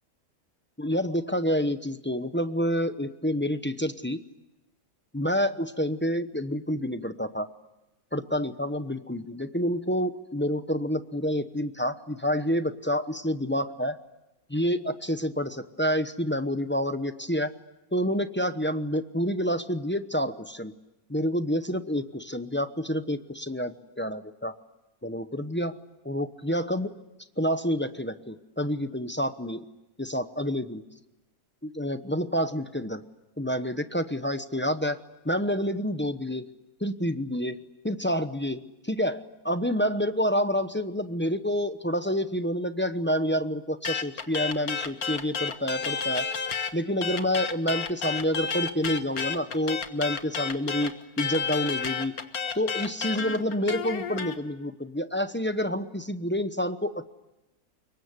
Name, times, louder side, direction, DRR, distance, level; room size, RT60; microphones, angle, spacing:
voice 1, 0.8-4.2 5.1-7.5 8.1-14.0 14.5-17.5 17.9-20.7 21.1-24.5 25.0-25.8 26.0-26.9 27.4-29.6 30.0-30.8 31.6-33.0 33.4-35.0 35.2-36.5 36.8-37.6 37.8-46.3 46.7-52.1 52.5-57.0, equal, 10° left, 10 dB, 0.8 m, -28 dB
sound 1, 43.8-46.7 47.0-54.3, left 5 dB, 80° left, 1.9 m, -31 dB
26.5 x 23.0 x 9.6 m, 0.97 s
omnidirectional pair, 1.5 m